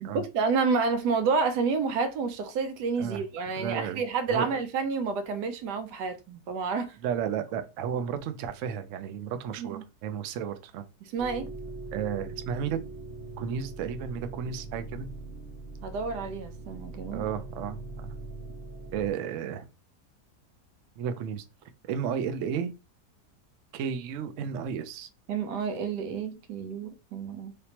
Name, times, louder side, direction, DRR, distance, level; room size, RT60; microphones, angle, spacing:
voice 1, 0.0-7.0 9.6-9.8 11.0-11.5 15.8-17.2 25.3-27.6, right 5 dB, 85° right, 1.3 m, -29 dB
voice 2, 3.5-4.0 4.3-4.6 7.0-10.8 11.9-12.8 13.4-15.1 17.1-18.1 18.9-19.6 21.0-21.4 21.8-22.7 23.7-25.1, right 8 dB, 70° right, 0.7 m, -33 dB
sound 1, 11.2-19.1, right 2 dB, 15° right, 0.8 m, -41 dB
3.5 x 2.8 x 2.8 m
omnidirectional pair, 1.7 m